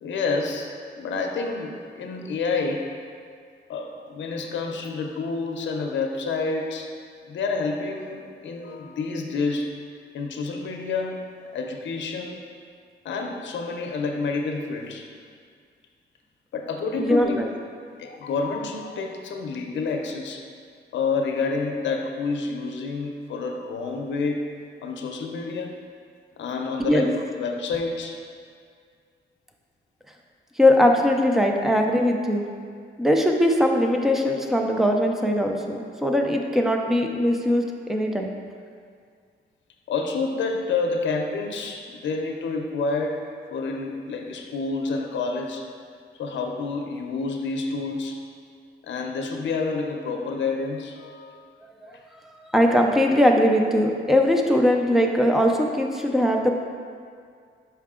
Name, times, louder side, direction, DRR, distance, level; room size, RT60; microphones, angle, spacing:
voice 1, 0.0-3.0 3.7-6.9 7.3-9.8 10.1-12.5 13.0-15.1 16.5-17.4 18.0-20.5 20.9-24.5 24.8-25.8 26.4-28.2 39.9-45.7 46.1-48.2 48.8-51.5, left 4 dB, 80° left, 3 dB, 0.6 m, -29 dB
voice 2, 17.0-17.5 26.9-27.0 30.6-32.4 33.0-38.3 51.8-52.0 52.3-56.6, left 1 dB, ahead, 2 dB, 0.4 m, -21 dB
5.7 x 4.6 x 3.6 m, 2.2 s
wide cardioid pair, 150°, 19 cm